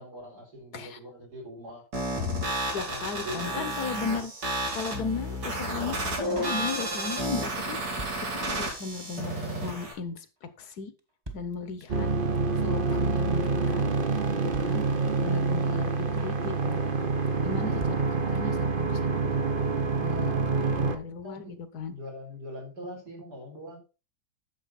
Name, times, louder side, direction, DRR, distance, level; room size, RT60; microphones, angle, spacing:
voice 1, 0.0-1.8 2.7-3.7 21.2-23.8, equal, 70° right, -1 dB, 4.8 m, -42 dB
sound 1, 1.9-9.9, right 1 dB, 90° right, 3.6 m, -31 dB
voice 2, 2.7-4.3 4.7-9.3 9.6-10.9 11.3-12.1 12.6-13.9 14.4-14.8 15.2-16.8 17.4-19.2 20.0-21.9, left 5 dB, 65° left, 12 dB, 1.5 m, -36 dB
Drum kit, 6.4-7.2 7.4-7.5 7.7-8.8 9.1-9.2 9.4-9.9 10.2-10.5 10.7-10.8 11.0-11.1 11.3-12.1 12.4-12.5 12.6-13.2 13.4-13.7 14.0-14.1 14.3-14.4 14.5-15.4 15.6-15.7 15.9-16.5 16.7-17.0 17.3-17.4 17.5-17.6 17.8-18.6 18.9-19.0 19.2-19.3, right 1 dB, 15° right, 1.1 m, -44 dB
sound 2, 11.9-21.0, right 4 dB, 40° right, 0.8 m, -27 dB
9.2 x 7.0 x 4.2 m, 0.32 s
omnidirectional pair, 1.8 m